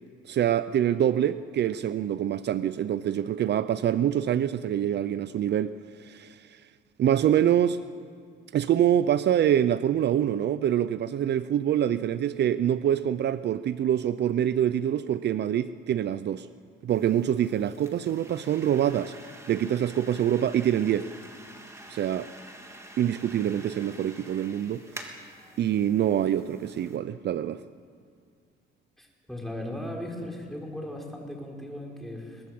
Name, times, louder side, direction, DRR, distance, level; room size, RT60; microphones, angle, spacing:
voice 1, 0.2-5.7 6.0-6.6 7.0-7.8 8.5-16.5 16.8-19.1 19.5-21.1 21.9-22.3 23.0-24.8 25.6-27.6, right 10 dB, 60° right, 14 dB, 0.6 m, -25 dB
sound 1, 16.9-27.0, right 1 dB, 15° right, 3.2 m, -47 dB
voice 2, 29.0-32.4, left 1 dB, ahead, -1 dB, 5.5 m, -37 dB
22.5 x 19.5 x 7.8 m, 2.2 s
cardioid pair, 90°, 20 cm